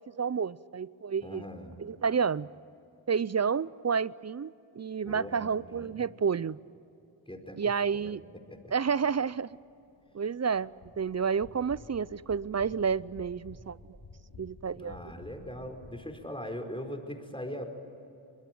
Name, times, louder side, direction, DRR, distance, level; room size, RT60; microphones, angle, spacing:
voice 1, 0.0-1.4 1.8-2.5 3.1-6.6 7.6-8.2 8.7-9.5 10.1-10.7 11.0-14.0 14.4-15.0, right 6 dB, 35° right, 20 dB, 0.5 m, -30 dB
voice 2, 1.2-1.7 5.0-6.0 7.3-7.6 8.0-8.2 8.5-8.6 14.7-17.6, equal, 10° left, 4 dB, 4.6 m, -40 dB
sound 1, 8.6-15.9, left 3 dB, 80° left, 3.0 m, -53 dB
24.5 x 21.0 x 9.3 m, 2.8 s
cardioid pair, 45°, 49 cm